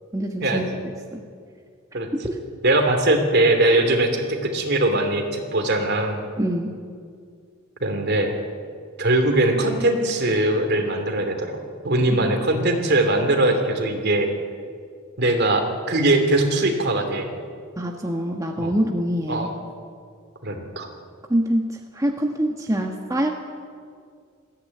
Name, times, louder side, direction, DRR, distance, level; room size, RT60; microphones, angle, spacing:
voice 1, 0.1-0.6 1.1-1.2 2.2-2.4 6.4-6.7 12.1-12.3 17.8-19.5 21.3-23.3, right 1 dB, 15° right, 2 dB, 1.3 m, -25 dB
voice 2, 2.6-6.2 7.8-8.3 9.0-11.6 11.8-14.3 15.2-17.3 18.6-18.7 19.3-19.5 20.4-20.9, right 2 dB, 55° right, 5 dB, 2.9 m, -21 dB
20.5 x 15.5 x 9.6 m, 2.2 s
head